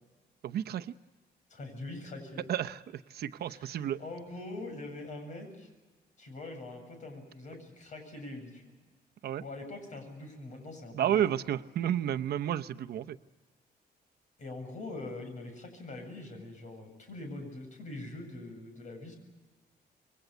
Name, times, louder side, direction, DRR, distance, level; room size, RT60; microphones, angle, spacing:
voice 1, 0.4-0.9 2.5-4.0 9.2-9.4 10.9-13.2, right 10 dB, 70° right, 9 dB, 0.8 m, -31 dB
voice 2, 1.5-2.5 3.4-5.7 6.2-8.6 9.4-11.2 14.4-19.2, left 2 dB, 45° left, 5 dB, 7.7 m, -43 dB
27.5 x 23.0 x 8.2 m, 1.3 s
wide cardioid pair, 170°, 17 cm